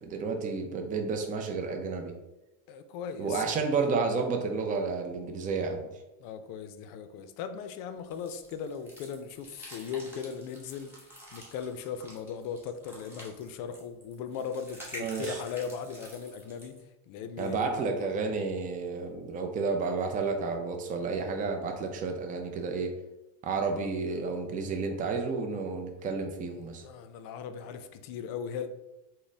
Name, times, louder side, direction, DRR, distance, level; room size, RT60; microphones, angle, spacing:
voice 1, 0.0-2.1 3.2-5.9 15.0-15.4 17.4-22.9 23.4-26.8, right 4 dB, 20° right, 3 dB, 0.4 m, -31 dB
voice 2, 2.7-3.4 6.2-17.9 26.5-28.7, left 7 dB, 60° left, 10 dB, 0.5 m, -38 dB
sound 1, 8.1-16.8, equal, 5° right, 1.0 m, -48 dB
4.0 x 2.1 x 3.3 m, 0.97 s
supercardioid pair, 120°, 39 cm